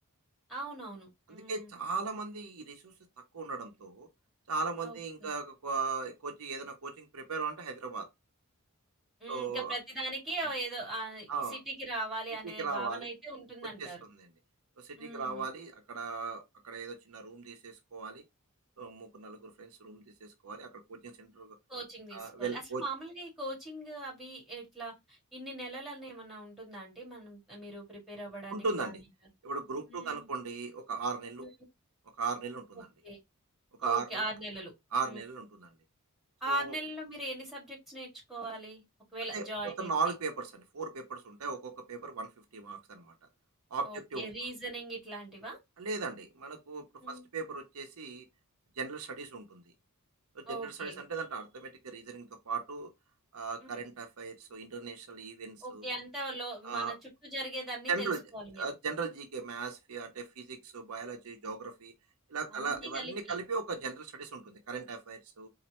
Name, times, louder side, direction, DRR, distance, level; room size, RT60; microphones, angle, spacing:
voice 1, 0.5-1.7 4.8-5.3 9.2-14.0 15.0-15.5 21.7-29.0 29.9-30.3 31.4-31.5 32.8-33.2 33.8-34.7 35.0-35.2 36.4-38.8 39.1-39.9 43.8-45.6 47.0-47.3 50.5-51.0 53.6-53.7 55.6-57.0 57.2-58.6 62.5-63.4, right 1 dB, ahead, 2.1 m, -40 dB
voice 2, 1.3-2.9 3.3-4.1 4.5-8.1 9.3-9.8 11.3-11.6 12.6-13.1 13.8-13.9 14.2-14.3 14.8-18.2 18.8-21.6 22.1-22.8 28.5-29.0 29.4-31.5 32.2-32.9 33.8-34.2 34.9-35.7 36.5-36.7 39.3-43.1 43.7-44.3 45.8-48.3 48.8-49.6 50.3-52.9 53.3-55.9 56.6-56.9 57.9-58.2 58.6-61.9 62.3-65.5, right 4 dB, 75° right, 0.8 m, -37 dB
4.1 x 2.6 x 3.0 m
head